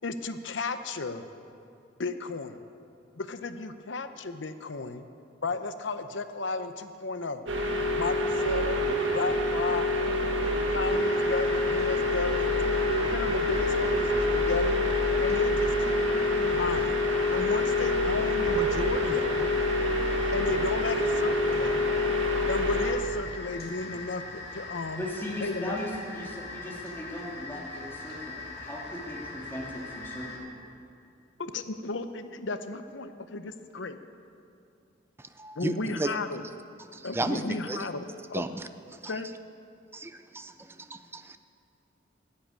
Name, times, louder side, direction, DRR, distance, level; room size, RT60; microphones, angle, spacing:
voice 1, 0.0-1.3 2.0-2.6 3.2-5.1 5.4-7.4 7.9-8.8 9.1-9.9 10.7-12.8 13.1-14.8 15.2-17.0 17.3-19.5 20.3-21.8 22.5-25.0 25.4-25.8 31.4-34.0 35.5-36.5 37.0-38.4 39.1-39.3, left 3 dB, 70° left, 10 dB, 0.8 m, -34 dB
sound 1, 7.5-22.9, left 1 dB, 80° right, 1.7 m, -26 dB
sound 2, 10.8-30.4, left 3 dB, 55° left, 2.2 m, -41 dB
voice 2, 25.0-30.4, left 1 dB, 10° left, -4 dB, 2.5 m, -38 dB
voice 3, 35.4-36.1 36.9-37.4 37.7-37.8 38.3-38.5 39.9-40.5 40.9-41.4, right 2 dB, 10° right, 10 dB, 0.5 m, -33 dB
12.5 x 8.8 x 9.0 m, 2.5 s
head